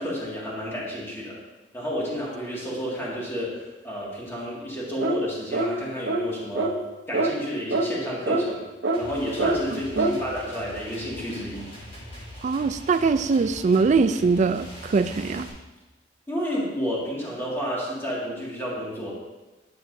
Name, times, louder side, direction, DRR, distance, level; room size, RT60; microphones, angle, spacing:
voice 1, 0.0-1.4 1.7-6.8 7.1-8.6 8.9-11.7 16.3-19.1, equal, 15° left, -6 dB, 1.9 m, -31 dB
sound 1, 5.0-5.2 5.5-5.7 6.1-6.3 6.6-6.7 7.1-7.3 7.7-7.9 8.3-8.4 8.8-9.0 9.4-9.6 10.0-10.2, right 2 dB, 65° right, 0.8 m, -24 dB
sound 2, 8.9-15.5, equal, 35° left, 3.1 m, -42 dB
voice 2, 9.7-10.2 12.4-15.5, right 4 dB, 40° right, 11 dB, 0.3 m, -22 dB
11.0 x 7.5 x 2.6 m, 1.1 s
head